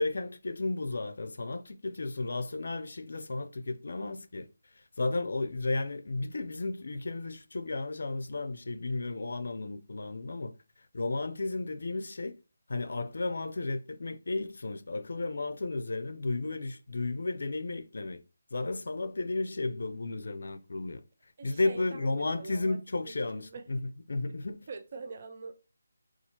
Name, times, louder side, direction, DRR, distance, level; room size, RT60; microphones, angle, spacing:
voice 1, 0.0-4.5 4.8-10.5 10.9-12.3 12.7-18.2 18.5-21.0 21.4-24.6, left 2 dB, 65° left, 0.4 m, -33 dB
voice 2, 21.4-22.8 23.4-23.8 24.7-25.5, right 4 dB, 35° right, 0.3 m, -44 dB
4.2 x 2.4 x 2.9 m
hypercardioid pair, 170°, 0 cm